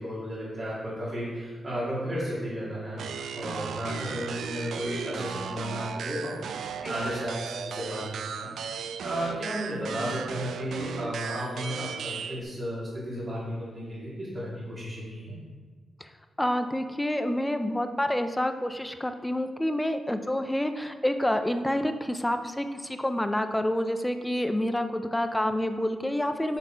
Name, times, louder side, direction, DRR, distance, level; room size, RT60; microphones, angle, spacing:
voice 1, 0.0-3.0 3.3-6.4 6.9-8.5 9.0-15.4, equal, 40° right, -9 dB, 2.3 m, -33 dB
sound 1, 3.0-12.4, right 6 dB, 90° right, 0.4 m, -36 dB
voice 2, 16.4-26.6, left 1 dB, 5° left, 8 dB, 0.4 m, -28 dB
9.7 x 4.1 x 4.5 m, 1.5 s
wide cardioid pair, 140°, 0 cm